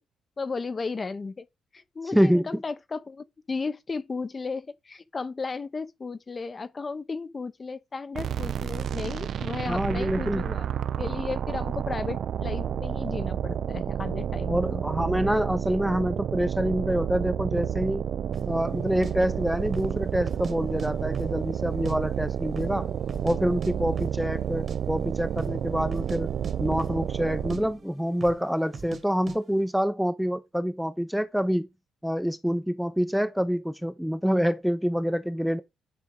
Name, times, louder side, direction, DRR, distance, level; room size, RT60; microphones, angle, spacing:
voice 1, 0.4-1.5 1.7-10.7 11.0-14.8, left 4 dB, 30° left, 0.8 m, -34 dB
voice 2, 2.1-2.4 9.6-10.4 14.4-18.0 18.5-22.9 23.2-26.3 26.6-31.7 32.0-35.6, equal, ahead, 0.7 m, -26 dB
sound 1, 8.1-27.8, right 9 dB, 60° right, 0.5 m, -30 dB
sound 2, 18.3-18.5 19.0-19.1 19.6-20.0 20.3-20.9 21.1-22.0 22.2-22.3 22.6-23.4 23.6-23.7 24.0-24.2 24.5-24.8 25.3-25.6 25.9-26.2 26.4-27.2 27.5-27.6 28.2-28.4 28.7-29.0 29.3-29.4, right 5 dB, 45° right, 1.4 m, -39 dB
9.5 x 3.6 x 4.7 m
cardioid pair, 90°, 0 cm